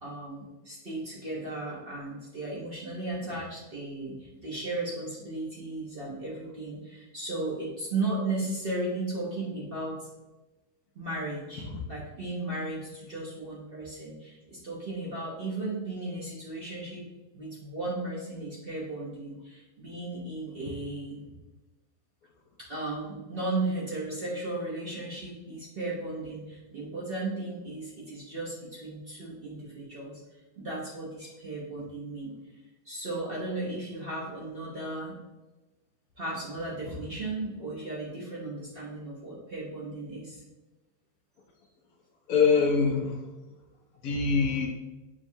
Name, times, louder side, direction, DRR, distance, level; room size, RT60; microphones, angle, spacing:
voice 1, 0.0-10.1 10.9-17.0 17.3-21.2 22.6-32.3 32.8-35.1 36.2-40.4, right 2 dB, 45° right, -6 dB, 0.8 m, -35 dB
voice 2, 42.3-43.3 44.0-44.7, left 5 dB, 70° left, 1 dB, 1.0 m, -24 dB
6.1 x 2.3 x 2.6 m, 1.1 s
omnidirectional pair, 1.8 m